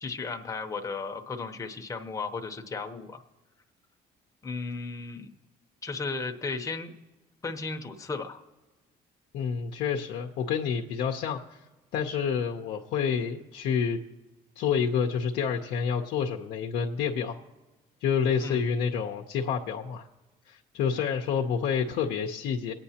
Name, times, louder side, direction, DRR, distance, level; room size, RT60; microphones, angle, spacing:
voice 1, 0.0-3.2 4.4-5.3 5.8-6.9 7.4-8.4 18.4-18.7, left 4 dB, 20° left, 4 dB, 0.8 m, -35 dB
voice 2, 9.3-11.6 11.9-14.0 14.6-17.4 18.0-20.1 20.5-22.7, left 7 dB, 80° left, 1 dB, 0.8 m, -28 dB
23.0 x 9.0 x 2.9 m, 1.2 s
cardioid pair, 110°, 17 cm